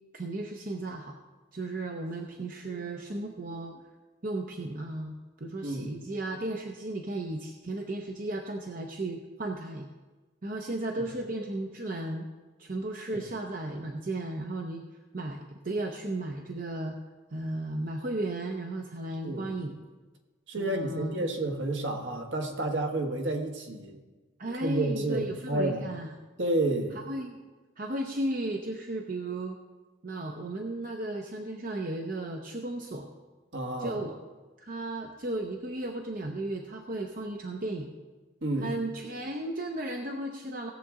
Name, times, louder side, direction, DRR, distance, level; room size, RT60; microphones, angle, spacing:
voice 1, 0.1-1.1 1.5-3.8 4.2-9.9 10.4-12.3 12.6-14.8 15.1-16.9 17.3-19.8 20.6-21.3 24.4-26.1 26.9-27.4 27.8-29.6 30.0-33.1 33.8-34.2 34.6-37.9 38.6-40.7, right 2 dB, 45° right, 3 dB, 0.7 m, -35 dB
voice 2, 5.6-5.9 13.1-13.2 19.2-19.5 20.5-24.0 24.6-25.9 26.4-27.0 33.5-34.0 38.4-38.7, right 2 dB, 65° right, 3 dB, 1.4 m, -30 dB
17.5 x 7.4 x 3.7 m, 1.2 s
head